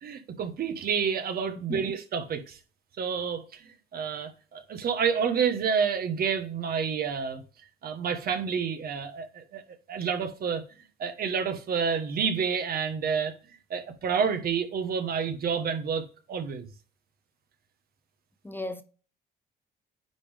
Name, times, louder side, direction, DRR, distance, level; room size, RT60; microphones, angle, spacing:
voice 1, 0.0-2.6 3.0-7.4 7.8-9.6 9.9-10.6 11.0-13.3 13.7-16.7, right 6 dB, 60° right, 1.3 m, -29 dB
voice 2, 18.4-18.8, left 1 dB, 10° left, 0.6 m, -35 dB
9.5 x 3.7 x 3.5 m
cardioid pair, 95°, 18 cm